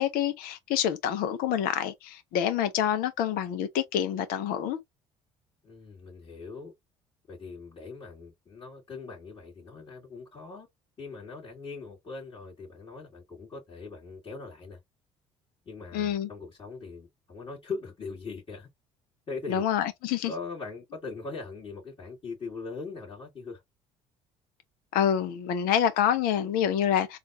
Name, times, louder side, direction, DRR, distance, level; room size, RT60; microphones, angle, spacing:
voice 1, 0.0-4.8 15.9-16.3 19.5-20.3 24.9-27.2, left 9 dB, 65° left, 0.6 m, -27 dB
voice 2, 5.6-6.7 7.3-10.7 11.0-14.8 15.7-18.7 19.3-19.6 20.3-23.6, left 4 dB, 35° left, 2.3 m, -40 dB
3.9 x 2.4 x 2.7 m
hypercardioid pair, 55°, 16 cm